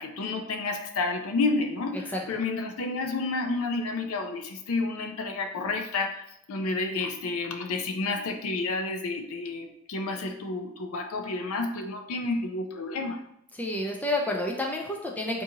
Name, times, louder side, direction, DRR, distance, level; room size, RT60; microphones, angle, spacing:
voice 1, 0.0-13.2, left 3 dB, 70° left, 6 dB, 0.4 m, -30 dB
voice 2, 13.5-15.4, left 1 dB, 10° left, 0 dB, 0.3 m, -30 dB
3.7 x 2.6 x 2.7 m, 0.78 s
head